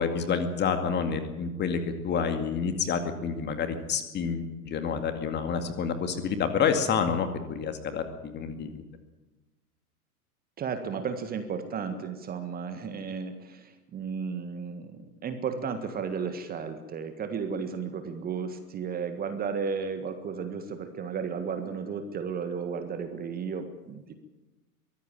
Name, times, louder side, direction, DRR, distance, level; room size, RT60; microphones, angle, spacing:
voice 1, 0.0-8.8, left 6 dB, 25° left, 7 dB, 2.2 m, -28 dB
voice 2, 10.6-24.1, right 6 dB, 20° right, 8 dB, 1.7 m, -34 dB
23.5 x 15.0 x 9.0 m, 1.1 s
figure-of-eight pair, 100°, 45 cm